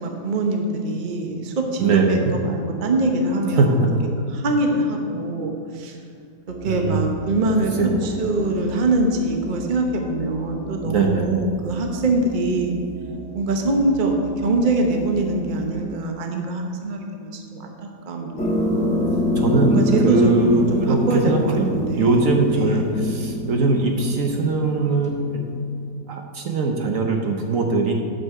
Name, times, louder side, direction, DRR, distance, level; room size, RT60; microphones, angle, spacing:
voice 1, 0.0-3.8 4.3-6.0 6.5-7.7 8.0-12.7 13.3-17.7 18.1-18.9 19.7-22.2 22.5-22.9, right 2 dB, 35° right, 2 dB, 0.9 m, -23 dB
voice 2, 1.8-2.3 3.6-4.0 6.7-7.0 7.8-8.1 10.8-11.2 19.4-25.4 26.1-27.9, right 3 dB, 60° right, 2 dB, 1.2 m, -21 dB
sound 1, 6.5-15.7, right 4 dB, 90° right, 1.6 m, -38 dB
sound 2, 18.4-25.6, left 1 dB, 5° left, 1.0 m, -24 dB
9.4 x 5.4 x 6.6 m, 2.4 s
omnidirectional pair, 1.7 m